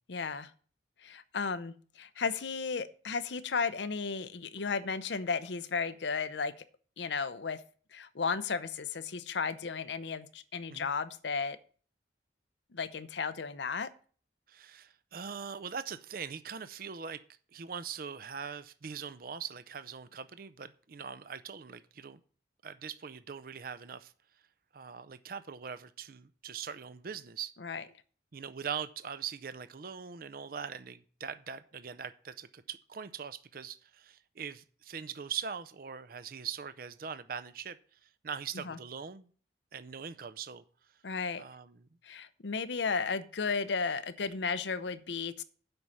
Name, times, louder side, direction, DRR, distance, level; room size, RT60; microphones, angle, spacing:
voice 1, 0.1-0.5 1.0-6.6 7.0-7.6 7.9-11.6 12.7-13.9 27.6-27.8 38.6-38.8 41.0-41.4 42.0-45.4, left 5 dB, 75° left, 13 dB, 0.7 m, -34 dB
voice 2, 14.5-17.2 17.5-22.2 22.6-24.1 24.7-27.5 28.3-39.3 39.7-40.6 41.4-41.9, right 7 dB, 50° right, 14 dB, 0.5 m, -42 dB
7.8 x 5.5 x 7.1 m, 0.43 s
head